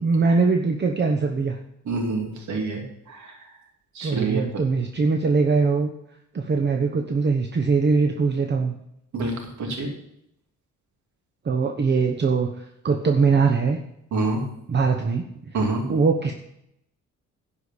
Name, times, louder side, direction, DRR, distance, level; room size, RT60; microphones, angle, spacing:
voice 1, 0.0-1.6 4.0-5.9 6.3-8.7 11.4-12.5 12.8-13.8 14.7-15.6 15.9-16.3, right 4 dB, 35° right, 4 dB, 1.0 m, -21 dB
voice 2, 1.9-3.3 3.9-4.4 9.1-9.9 14.1-14.4 15.5-15.8, right 3 dB, 70° right, 2 dB, 2.6 m, -27 dB
11.0 x 5.1 x 8.3 m, 0.77 s
cardioid pair, 90°, 30 cm